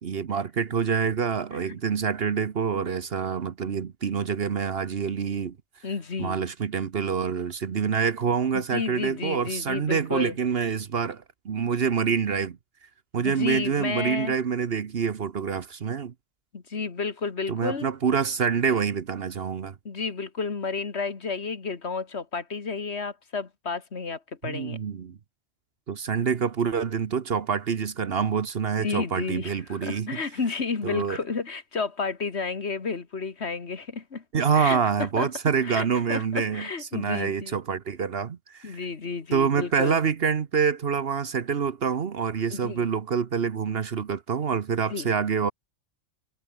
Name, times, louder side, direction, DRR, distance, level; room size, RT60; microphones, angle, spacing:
voice 1, 0.0-5.6 6.2-12.6 13.1-16.1 17.5-19.7 24.4-25.2 25.9-30.2 30.8-31.2 34.3-38.8 39.3-45.5, right 6 dB, 55° right, 1.1 m, -26 dB
voice 2, 5.8-6.4 8.5-10.4 13.2-14.3 16.5-17.9 19.9-24.8 28.8-34.2 34.5-34.8 35.2-35.3 35.6-37.6 38.6-40.0 42.5-42.9 44.9-45.1, left 4 dB, 60° left, 2.1 m, -31 dB
omnidirectional pair, 1.3 m